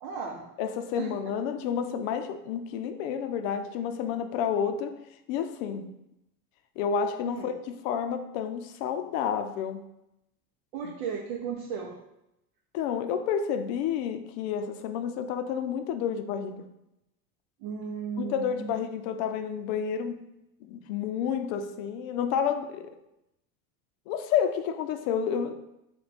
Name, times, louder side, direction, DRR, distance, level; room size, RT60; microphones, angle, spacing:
voice 1, 0.0-0.4 1.0-1.1 7.2-7.5 10.7-12.0 17.6-18.7, right 6 dB, 75° right, 0 dB, 0.7 m, -35 dB
voice 2, 0.6-5.0 5.3-5.9 6.8-9.8 10.8-10.9 12.7-16.7 18.2-20.3 20.6-23.0 24.1-25.5, left 7 dB, 70° left, 8 dB, 0.5 m, -30 dB
3.5 x 2.2 x 4.0 m, 0.87 s
supercardioid pair, 100°, 43 cm